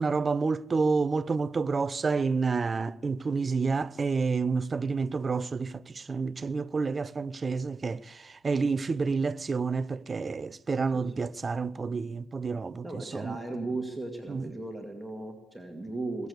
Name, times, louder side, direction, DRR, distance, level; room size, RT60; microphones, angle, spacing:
voice 1, 0.0-13.4 14.3-14.5, right 4 dB, 30° right, 0.5 m, -29 dB
voice 2, 10.9-11.3 12.8-16.3, right 2 dB, 5° right, 2.2 m, -36 dB
21.5 x 8.3 x 8.2 m
hypercardioid pair, 55°, 0 cm